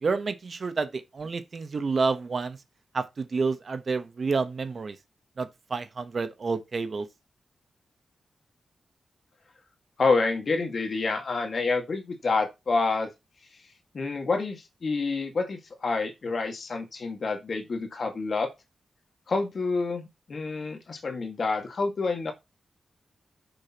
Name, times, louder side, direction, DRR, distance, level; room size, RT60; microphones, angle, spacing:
voice 1, 0.0-2.6 2.9-5.0 5.4-7.1, right 4 dB, 45° right, 1.1 m, -29 dB
voice 2, 10.0-13.1 13.9-18.5 19.3-22.3, left 3 dB, 45° left, 1.9 m, -28 dB
10.0 x 6.7 x 3.0 m
wide cardioid pair, 140°, 0 cm